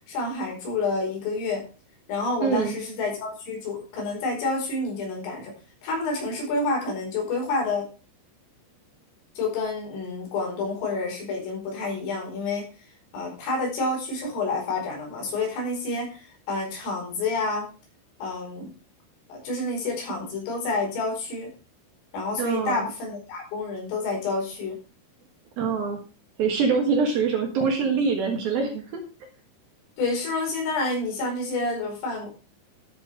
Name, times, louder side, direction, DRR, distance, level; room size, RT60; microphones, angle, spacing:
voice 1, 0.1-1.7 2.1-5.5 5.8-7.9 9.4-12.7 13.1-17.7 18.2-18.7 19.3-21.5 22.1-24.8 30.0-32.3, left 3 dB, 80° left, 0 dB, 7.3 m, -29 dB
voice 2, 2.4-2.8 22.4-22.9 25.6-26.0 26.4-29.0, right 5 dB, 60° right, 3 dB, 2.9 m, -24 dB
12.5 x 7.3 x 4.7 m, 0.34 s
omnidirectional pair, 5.8 m